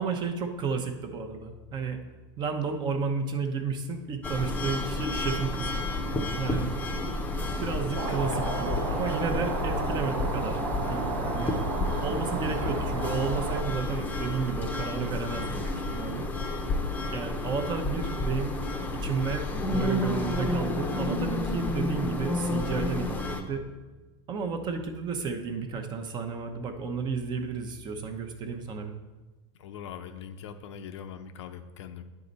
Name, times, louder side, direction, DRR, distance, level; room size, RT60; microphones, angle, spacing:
voice 1, 0.0-2.0 2.4-5.8 6.4-6.7 7.6-11.5 12.0-16.3 17.1-18.5 19.0-23.6 24.3-29.0, right 5 dB, 30° right, 6 dB, 0.9 m, -32 dB
sound 1, 4.2-23.4, left 2 dB, 10° left, 0.8 m, -31 dB
sound 2, 7.9-13.6, right 3 dB, 85° right, 1.4 m, -32 dB
voice 2, 8.1-8.5 8.9-9.6 29.6-32.0, left 7 dB, 80° left, 8 dB, 0.7 m, -42 dB
9.6 x 4.9 x 4.0 m, 1.2 s
supercardioid pair, 135°, 14 cm